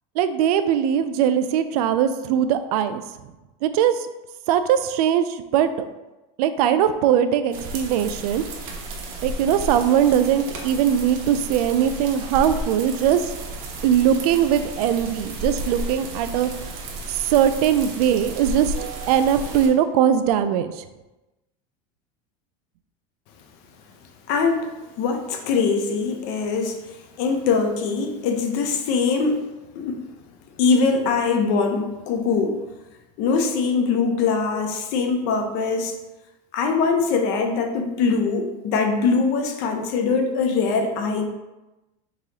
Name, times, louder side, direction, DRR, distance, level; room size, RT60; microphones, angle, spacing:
voice 1, 0.2-3.0 3.6-4.1 4.5-5.7 6.4-8.4 9.2-13.3 13.8-16.5 17.1-20.8, right 9 dB, 90° right, 10 dB, 0.4 m, -20 dB
sound 1, 7.5-19.7, right 2 dB, 50° right, 0.9 m, -33 dB
voice 2, 24.3-24.7 25.0-26.8 27.2-29.4 29.8-30.0 30.6-32.6 33.2-36.0 36.5-41.3, left 4 dB, 60° left, 5 dB, 0.7 m, -22 dB
3.8 x 2.8 x 4.7 m, 1.1 s
supercardioid pair, 140°, 19 cm